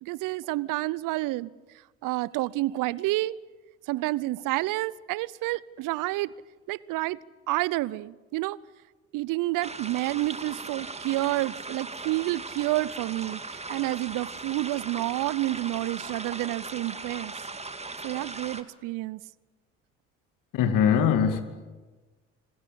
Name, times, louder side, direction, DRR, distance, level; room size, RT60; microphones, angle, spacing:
voice 1, 0.0-1.5 2.0-3.3 3.9-6.3 6.7-7.2 7.5-8.6 9.1-17.4 18.0-19.2, right 18 dB, 60° right, 22 dB, 0.8 m, -29 dB
sound 1, 9.6-18.6, right 3 dB, 20° right, 2.0 m, -38 dB
voice 2, 20.5-21.4, left 8 dB, 60° left, 9 dB, 2.7 m, -21 dB
27.0 x 20.5 x 8.6 m, 1.3 s
hypercardioid pair, 50°, 36 cm